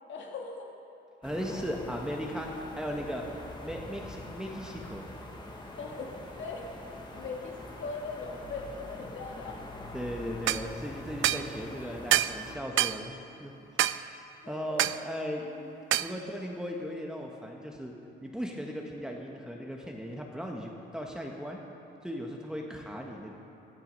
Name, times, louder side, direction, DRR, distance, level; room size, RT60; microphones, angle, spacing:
voice 1, 0.1-0.7 1.5-1.6 5.7-6.7 7.1-9.6 14.4-14.8 15.4-15.7, left 4 dB, 70° left, 0 dB, 2.3 m, -40 dB
sound 1, 1.2-12.6, left 1 dB, 20° left, 2.0 m, -44 dB
voice 2, 1.2-3.3 3.6-5.1 9.9-13.9 14.5-15.5 16.0-17.9 18.2-21.6 22.0-23.3, equal, 5° right, 0 dB, 1.4 m, -37 dB
sound 2, 10.5-10.6 11.2-11.5 12.1-12.4 12.8-13.0 13.8-14.0 14.8-15.0 15.9-16.1, right 14 dB, 75° right, 0.4 m, -26 dB
17.5 x 12.0 x 5.4 m, 2.8 s
cardioid pair, 90°, 20 cm